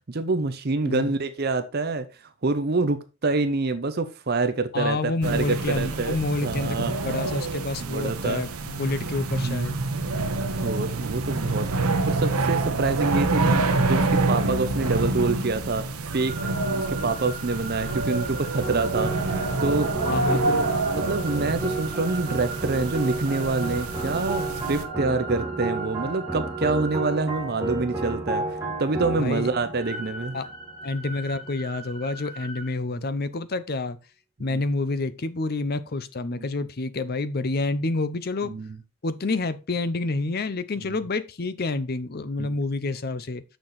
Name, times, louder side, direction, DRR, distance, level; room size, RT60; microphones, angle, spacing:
voice 1, 0.1-2.1 2.4-7.2 7.8-8.4 9.4-9.7 10.6-11.7 12.1-15.9 16.1-30.4 34.5-34.6 38.5-38.8 40.9-41.0 42.4-42.5, right 3 dB, 45° right, 0.7 m, -27 dB
voice 2, 0.8-1.1 4.7-9.8 20.1-20.7 29.2-29.5 30.3-30.5 30.8-34.0 34.4-38.5 39.0-43.4, left 3 dB, 45° left, 0.6 m, -28 dB
sound 1, 5.2-24.8, right 3 dB, 80° right, 1.0 m, -27 dB
sound 2, 16.3-27.1 29.8-32.7, right 3 dB, 25° left, 2.9 m, -39 dB
sound 3, 18.6-31.1, right 3 dB, 10° right, 2.0 m, -32 dB
6.7 x 6.2 x 4.1 m
head